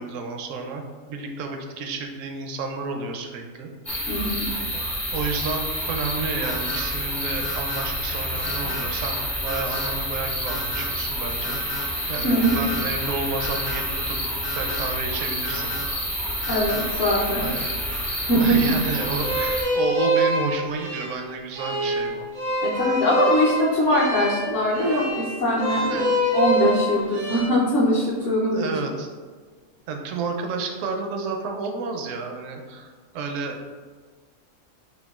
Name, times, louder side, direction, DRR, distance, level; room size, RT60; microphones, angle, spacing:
voice 1, 0.0-3.7 4.7-4.9 5.1-11.8 12.1-14.2 14.5-15.8 17.4-17.7 18.4-22.3 25.9-26.1 28.2-29.1 29.9-33.6, right 4 dB, 70° right, 4 dB, 0.9 m, -31 dB
sound 1, 3.9-19.6, equal, ahead, 0.4 m, -28 dB
voice 2, 4.1-4.5 12.2-12.6 16.5-17.5 18.3-18.6 22.6-28.7, equal, 60° left, -8 dB, 1.0 m, -22 dB
sound 2, 6.4-6.8 7.4-7.8 8.4-8.8 9.5-9.9 10.5-10.9 11.4-11.8 12.4-12.8 13.4-13.8 14.4-14.8 15.4-15.8 16.4-16.8, left 2 dB, 90° left, 1.6 m, -34 dB
sound 3, 19.2-27.4, right 1 dB, 90° right, 1.3 m, -25 dB
6.6 x 2.3 x 2.3 m, 1.5 s
omnidirectional pair, 1.5 m